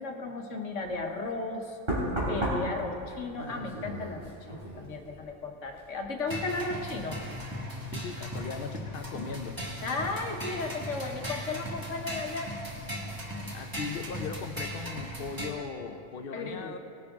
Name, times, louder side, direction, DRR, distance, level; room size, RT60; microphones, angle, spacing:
voice 1, 0.0-1.8 2.3-7.2 9.8-12.5 16.3-16.8, left 3 dB, 75° left, 3 dB, 1.4 m, -35 dB
Knock, 0.8-1.0 1.9-5.4 5.6-6.0, equal, 50° right, 3.5 m, -34 dB
sound 1, 6.3-15.5, equal, 15° right, 1.6 m, -38 dB
voice 2, 7.9-9.6 12.1-12.3 13.5-16.8, left 5 dB, 55° left, 5 dB, 0.8 m, -38 dB
19.0 x 9.8 x 3.6 m, 2.6 s
omnidirectional pair, 1.3 m